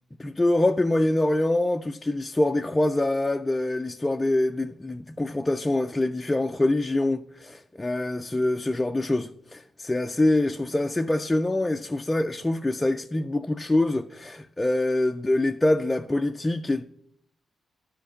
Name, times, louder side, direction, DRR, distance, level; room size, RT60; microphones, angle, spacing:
voice 1, 0.2-16.8, left 2 dB, 10° left, 0.4 m, -25 dB
13.0 x 5.1 x 8.5 m
wide cardioid pair, 170°, 0 cm